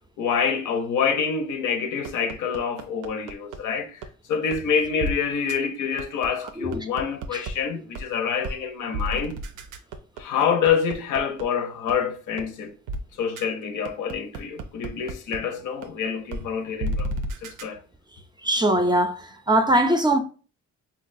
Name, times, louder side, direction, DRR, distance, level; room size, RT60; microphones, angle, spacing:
voice 1, 0.2-4.0 4.3-9.4 10.2-12.7 13.2-17.1 17.4-17.8, left 6 dB, 85° left, 0.6 m, -26 dB
sound 1, 2.0-3.6 4.0-4.1 4.5-4.6 5.0-5.1 5.5-5.6 6.0-7.5 7.9-8.0 8.4-8.6 8.9-11.4 11.9-12.0 12.4-12.5 12.9-13.0 13.4-13.5 13.8-15.4 15.8-15.9 16.3-16.4 16.8-17.6, right 1 dB, 80° right, 0.5 m, -31 dB
voice 2, 18.4-19.2 19.5-20.2, right 1 dB, 15° right, 0.3 m, -20 dB
3.8 x 2.3 x 2.5 m
cardioid pair, 90°, 30 cm